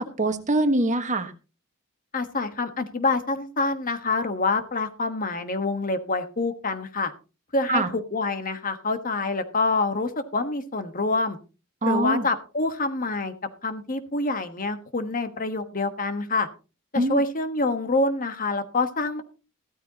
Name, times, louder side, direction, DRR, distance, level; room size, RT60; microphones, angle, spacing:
voice 1, 0.0-1.3 7.7-7.9 11.8-12.3 17.0-17.2, right 2 dB, 35° right, 8 dB, 1.4 m, -23 dB
voice 2, 2.1-7.1 7.5-11.4 11.8-13.3 13.6-16.5 16.9-19.2, left 3 dB, 40° left, 9 dB, 1.3 m, -26 dB
15.0 x 13.5 x 2.9 m, 0.32 s
head